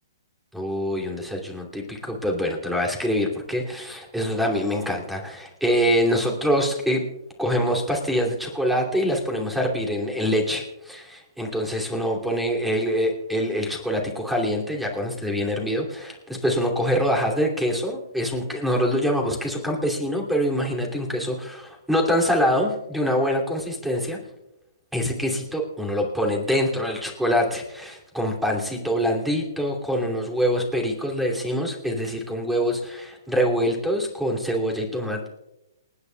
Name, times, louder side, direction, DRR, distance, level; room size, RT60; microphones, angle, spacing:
voice 1, 0.5-7.0 7.4-24.2 24.9-35.3, equal, 5° right, 0 dB, 2.7 m, -25 dB
28.5 x 9.8 x 2.3 m, 0.93 s
hypercardioid pair, 125°, 2 cm